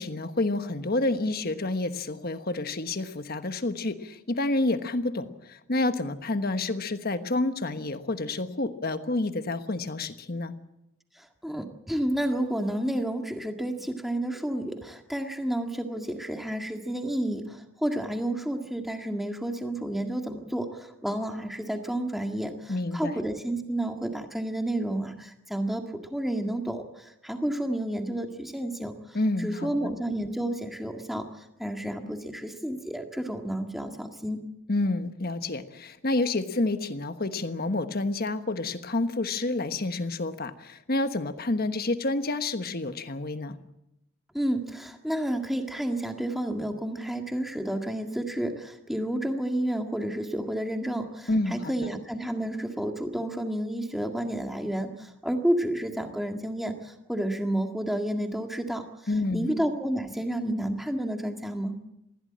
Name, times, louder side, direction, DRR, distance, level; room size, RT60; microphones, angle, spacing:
voice 1, 0.0-10.5 22.7-23.2 29.1-29.9 34.7-43.6 51.3-51.9 59.1-59.5, left 2 dB, 45° left, 9 dB, 1.3 m, -29 dB
voice 2, 11.2-34.5 44.3-58.8 59.3-61.7, right 1 dB, ahead, 4 dB, 1.8 m, -31 dB
21.0 x 16.0 x 8.8 m, 0.88 s
head